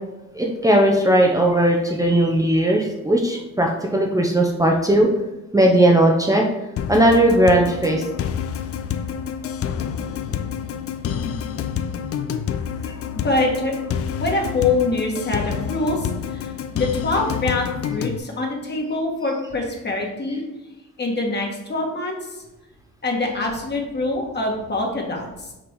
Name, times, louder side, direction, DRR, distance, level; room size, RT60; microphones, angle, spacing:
voice 1, 0.3-5.1 5.5-6.4 6.9-8.0, right 1 dB, 10° right, -1 dB, 0.8 m, -17 dB
sound 1, 6.8-18.2, left 8 dB, 50° left, 0.5 m, -28 dB
voice 2, 13.1-13.7 14.2-20.4 21.0-22.4 23.0-25.5, left 2 dB, 35° left, 0 dB, 1.8 m, -24 dB
6.0 x 4.0 x 4.8 m, 0.99 s
cardioid pair, 90°, 30 cm